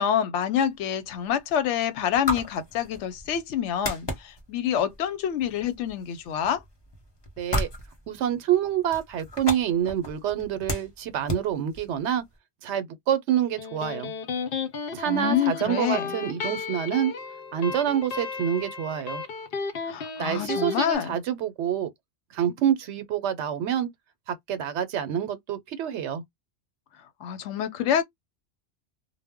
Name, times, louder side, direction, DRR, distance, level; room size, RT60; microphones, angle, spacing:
voice 1, 0.0-6.6 15.1-16.2 19.8-21.2 27.2-28.0, left 9 dB, 90° left, 0.9 m, -27 dB
sound 1, 0.6-12.4, left 1 dB, 25° left, 0.8 m, -36 dB
voice 2, 7.4-7.7 8.1-12.2 12.6-14.1 14.9-17.1 17.5-19.2 20.2-21.9 22.3-23.9 24.3-26.2, right 10 dB, 80° right, 0.9 m, -27 dB
Electric guitar, 13.4-20.8, left 5 dB, 60° left, 0.8 m, -34 dB
2.1 x 2.0 x 3.4 m
omnidirectional pair, 1.2 m